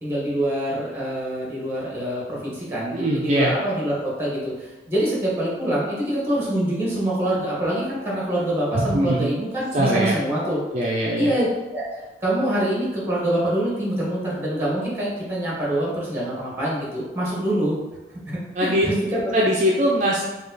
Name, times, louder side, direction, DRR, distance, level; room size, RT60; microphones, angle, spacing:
voice 1, 0.0-10.6 11.2-17.8 18.3-19.3, right 1 dB, 15° right, -5 dB, 1.4 m, -25 dB
voice 2, 2.9-3.5 8.7-9.3 9.7-10.2 10.7-11.3 18.6-18.9 19.3-20.2, right 1 dB, 40° right, -3 dB, 0.4 m, -21 dB
5.1 x 2.3 x 3.9 m, 1.1 s
head